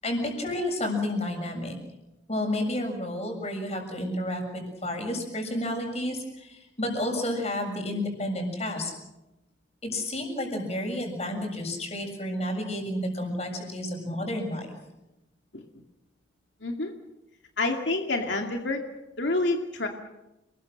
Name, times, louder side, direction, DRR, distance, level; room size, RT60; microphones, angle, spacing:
voice 1, 0.0-1.7 2.3-8.9 9.8-14.7, left 1 dB, 35° left, 3 dB, 7.0 m, -31 dB
voice 2, 16.6-16.9 17.6-18.8 19.2-19.9, left 2 dB, 80° left, 3 dB, 2.4 m, -27 dB
30.0 x 21.0 x 6.6 m, 0.95 s
head